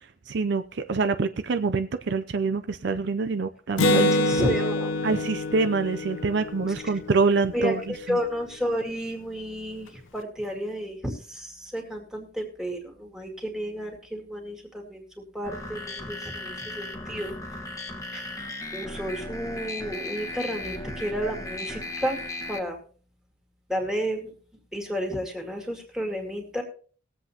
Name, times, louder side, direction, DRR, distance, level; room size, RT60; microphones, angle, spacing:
voice 1, 0.3-4.1 5.0-8.2, right 4 dB, 55° right, 9 dB, 0.5 m, -26 dB
Acoustic guitar, 3.8-7.4, left 1 dB, 75° left, 0.7 m, -25 dB
voice 2, 3.9-4.9 6.8-6.9 7.5-15.0 15.3-17.3 18.1-22.2 22.5-22.8 23.7-24.3 24.7-26.6, equal, 5° right, 1 dB, 2.1 m, -31 dB
sound 1, 15.4-22.6, left 1 dB, 15° left, 1.1 m, -36 dB
21.0 x 7.8 x 2.8 m, 0.42 s
head